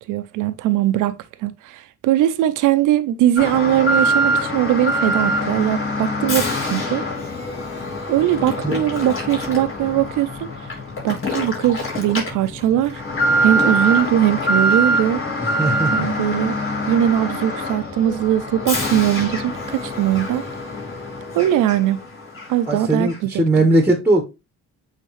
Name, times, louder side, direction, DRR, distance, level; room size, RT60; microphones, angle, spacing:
voice 1, 0.1-7.0 8.1-10.5 11.0-13.0 13.4-15.2 15.9-16.5 16.9-20.4 21.3-22.0 22.5-23.4, right 12 dB, 85° right, 0.7 m, -20 dB
Alarm, 3.4-22.0 22.4-22.5 23.1-23.2, equal, 45° left, 3.5 m, -24 dB
voice 2, 15.6-16.1 22.7-24.2, right 2 dB, 5° right, 1.3 m, -18 dB
8.8 x 3.7 x 3.2 m
cardioid pair, 90°, 30 cm